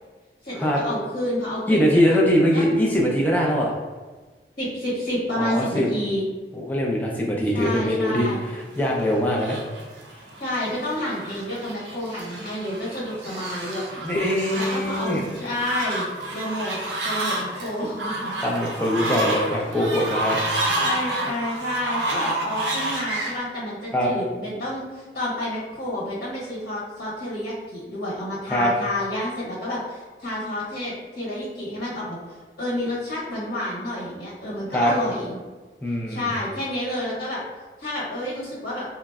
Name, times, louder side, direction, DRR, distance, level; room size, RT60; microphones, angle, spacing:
voice 1, 0.4-2.2 2.5-2.6 4.6-6.2 7.5-8.5 10.4-13.8 14.5-16.8 17.0-18.4 19.5-19.6 20.6-35.4 36.1-37.4 37.8-38.8, left 1 dB, 65° left, -7 dB, 1.1 m, -29 dB
voice 2, 1.7-3.7 5.4-5.9 6.5-8.3 8.8-9.6 14.0-15.3 18.4-20.4 23.9-24.1 28.5-28.7 34.7-34.9 35.8-36.3, equal, 10° left, -3 dB, 0.4 m, -22 dB
Fowl, 8.6-23.4, right 1 dB, 90° right, 0.5 m, -29 dB
3.7 x 2.0 x 2.3 m, 1.3 s
head